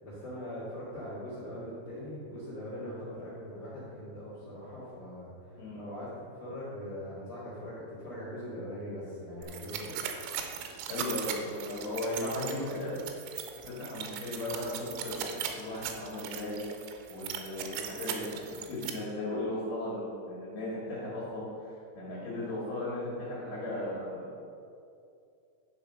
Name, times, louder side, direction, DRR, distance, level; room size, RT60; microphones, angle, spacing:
voice 1, 0.0-10.0, equal, 70° left, -11 dB, 1.2 m, -41 dB
sound 1, 9.4-18.9, right 9 dB, 85° right, 3.1 m, -39 dB
voice 2, 10.8-13.0 13.6-16.6 17.1-21.5 22.0-24.2, left 1 dB, 50° left, -8 dB, 2.8 m, -36 dB
10.5 x 4.9 x 5.4 m, 2.5 s
omnidirectional pair, 5.9 m